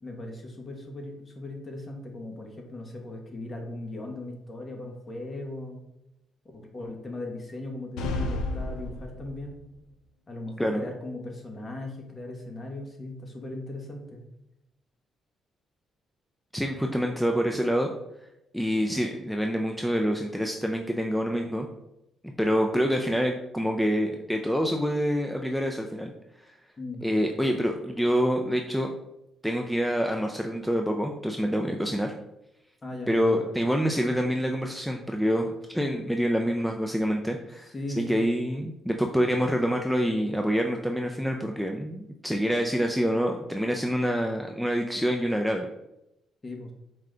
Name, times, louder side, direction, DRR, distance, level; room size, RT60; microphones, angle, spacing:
voice 1, 0.0-5.8 6.5-9.6 10.3-14.2 26.8-27.0 32.8-33.6 37.3-37.4 37.6-38.4 46.4-46.7, left 2 dB, 30° left, 2 dB, 0.9 m, -38 dB
sound 1, 8.0-9.6, left 2 dB, 90° left, 0.4 m, -31 dB
voice 2, 16.5-17.9 18.5-21.7 22.4-26.1 26.4-26.5 27.0-28.9 29.4-32.1 33.1-37.7 38.0-45.7, equal, ahead, 2 dB, 0.3 m, -26 dB
4.6 x 2.2 x 3.7 m, 0.86 s
cardioid pair, 90°, 0 cm